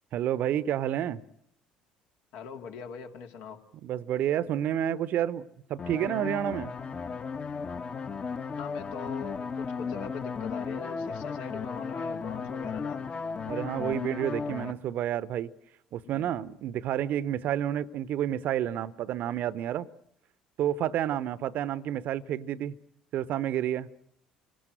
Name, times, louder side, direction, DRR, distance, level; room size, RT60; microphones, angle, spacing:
voice 1, 0.1-1.2 3.8-6.7 13.5-15.5 15.9-19.9 20.6-22.7 23.1-23.9, right 11 dB, 55° right, 0.9 m, -30 dB
voice 2, 2.3-3.6 8.6-13.2 16.0-16.3, left 6 dB, 65° left, 2.4 m, -41 dB
sound 1, 5.8-14.7, left 5 dB, 35° left, 1.5 m, -35 dB
28.0 x 18.0 x 7.8 m
hypercardioid pair, 55°, 3 cm